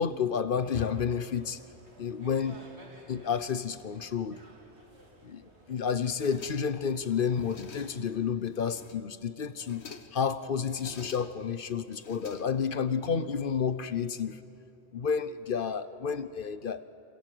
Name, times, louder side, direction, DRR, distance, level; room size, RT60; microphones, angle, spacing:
voice 1, 0.0-1.6 2.0-2.6 3.1-4.4 5.2-5.4 5.7-9.8 10.1-14.4 14.9-16.8, left 6 dB, 55° left, 14 dB, 0.9 m, -30 dB
sound 1, 0.9-8.1, right 1 dB, 70° right, 4.0 m, -55 dB
sound 2, 6.0-6.9 7.3-8.1 8.5-9.2 9.5-10.3 10.6-11.5 11.9-12.9, left 6 dB, 70° left, 1.4 m, -49 dB
28.0 x 27.5 x 7.8 m, 3.0 s
omnidirectional pair, 1.2 m